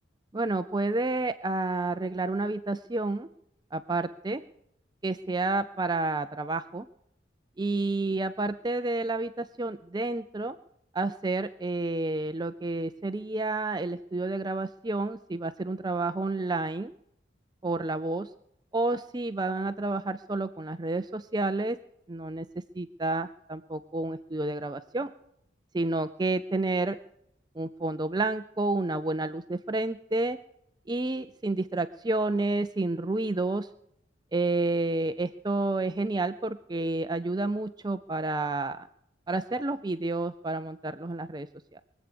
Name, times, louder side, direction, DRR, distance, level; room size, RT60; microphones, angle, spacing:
voice 1, 0.3-3.3 3.7-4.4 5.0-6.9 7.6-10.5 10.9-16.9 17.6-18.3 18.7-21.8 22.1-22.5 22.8-25.1 25.7-27.0 27.6-30.4 30.9-33.7 34.3-38.9 39.3-41.5 41.7-41.8, right 2 dB, 20° right, 10 dB, 0.5 m, -30 dB
23.0 x 8.3 x 6.8 m, 0.74 s
head